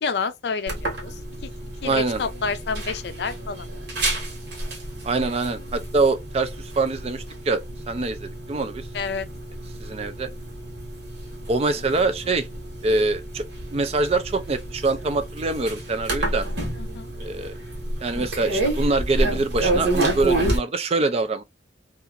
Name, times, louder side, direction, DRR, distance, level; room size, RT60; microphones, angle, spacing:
voice 1, 0.0-1.5 1.8-3.7 8.9-9.3 16.8-17.1, left 5 dB, 65° left, 0.4 m, -29 dB
sound 1, 0.7-20.6, right 1 dB, 65° right, 1.2 m, -29 dB
voice 2, 1.8-2.2 5.0-6.5 6.8-7.6 7.9-8.9 9.8-10.3 11.5-12.5 12.8-13.5 13.7-16.5 17.2-17.5 18.0-21.4, right 3 dB, 35° right, 0.3 m, -24 dB
2.8 x 2.4 x 2.5 m
head